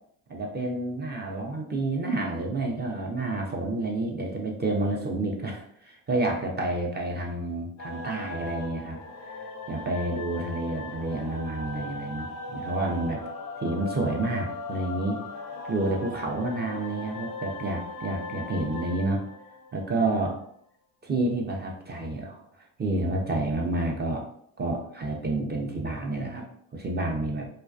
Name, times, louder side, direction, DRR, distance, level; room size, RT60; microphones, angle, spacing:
voice 1, 0.3-9.0 9.3-9.4 9.7-13.2 13.6-15.2 15.7-19.2 19.7-20.4 21.0-24.2 24.6-26.4 26.7-27.5, right 2 dB, 20° right, 0 dB, 0.4 m, -29 dB
sound 1, 7.8-20.4, left 2 dB, 35° left, 0.4 m, -38 dB
2.3 x 2.2 x 2.4 m, 0.68 s
supercardioid pair, 75°, 50 cm